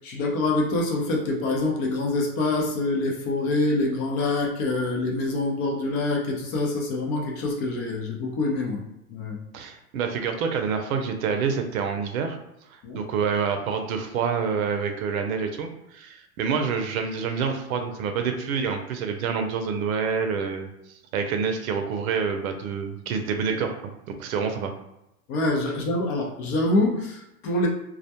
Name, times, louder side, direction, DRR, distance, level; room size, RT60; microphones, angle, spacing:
voice 1, 0.0-8.8 9.1-9.4 12.8-13.0 25.3-27.7, left 2 dB, 35° left, -1 dB, 0.6 m, -25 dB
voice 2, 9.5-12.4 12.9-20.7 21.1-23.7 24.2-24.7, right 6 dB, 65° right, 5 dB, 0.6 m, -27 dB
2.3 x 2.1 x 2.8 m, 0.86 s
hypercardioid pair, 120°, 45 cm